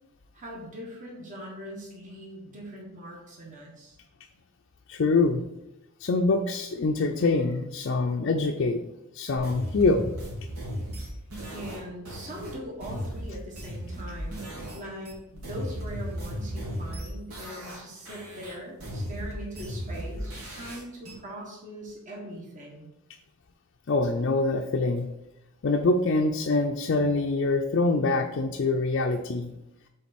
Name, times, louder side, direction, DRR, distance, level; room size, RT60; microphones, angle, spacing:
voice 1, 0.3-4.0 11.5-22.9, equal, 35° right, -3 dB, 1.4 m, -41 dB
voice 2, 4.9-5.4 6.0-8.8 9.1-10.1 23.9-25.1 25.6-29.5, left 3 dB, 55° left, 2 dB, 0.4 m, -25 dB
sound 1, 9.4-14.8 15.0-17.8 18.0-21.1, equal, 80° right, 2.2 m, -36 dB
7.4 x 3.8 x 4.2 m, 0.91 s
head